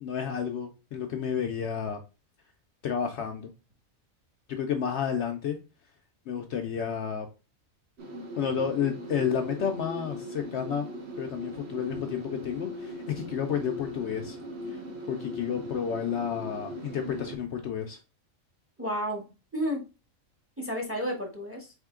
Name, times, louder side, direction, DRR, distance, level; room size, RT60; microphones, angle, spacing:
voice 1, 0.0-2.0 2.8-3.5 4.5-5.6 6.3-7.3 8.4-10.9 11.2-14.4 14.7-14.8 15.1-18.0, left 7 dB, 65° left, 5 dB, 0.8 m, -31 dB
sound 1, 8.0-17.4, left 1 dB, 55° right, 1.0 m, -39 dB
voice 2, 18.8-19.8 20.6-21.7, equal, 10° right, 1 dB, 0.8 m, -32 dB
3.6 x 3.5 x 3.6 m, 0.30 s
omnidirectional pair, 1.4 m